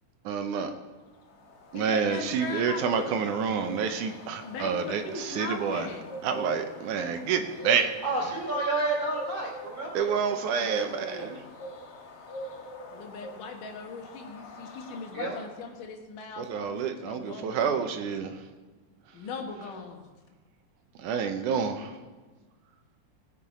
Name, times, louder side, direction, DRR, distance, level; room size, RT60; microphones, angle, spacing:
voice 1, 0.2-0.7 1.7-5.9 6.2-7.9 9.9-11.4 16.4-18.4 21.0-22.0, right 6 dB, 80° right, 6 dB, 2.4 m, -28 dB
sound 1, 1.1-15.7, equal, 55° left, 2.1 m, -43 dB
voice 2, 1.7-3.2 4.4-6.1 10.6-11.4 12.9-17.8 19.1-20.1, left 4 dB, 85° left, 3 dB, 2.9 m, -39 dB
voice 3, 8.0-10.0 15.1-15.3, right 2 dB, 30° right, -2 dB, 3.2 m, -29 dB
18.5 x 7.4 x 5.0 m, 1.3 s
omnidirectional pair, 3.6 m